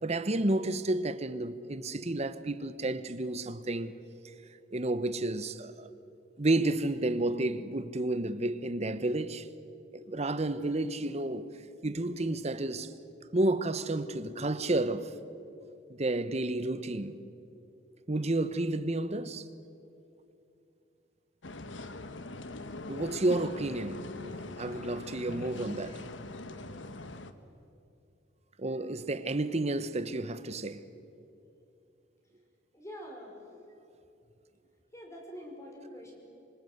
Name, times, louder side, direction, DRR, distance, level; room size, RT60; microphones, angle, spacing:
voice 1, 0.0-3.9 4.7-5.9 6.4-9.5 9.9-11.5 11.8-12.9 13.3-15.1 15.9-17.2 18.1-19.5 22.9-24.1 24.6-26.0 28.6-30.9, right 2 dB, 35° right, 1.0 m, -31 dB
sound 1, 21.4-27.3, left 2 dB, 85° left, 1.3 m, -42 dB
voice 2, 32.7-33.4 34.9-36.2, equal, 15° left, 5.3 m, -45 dB
27.0 x 25.0 x 8.1 m
head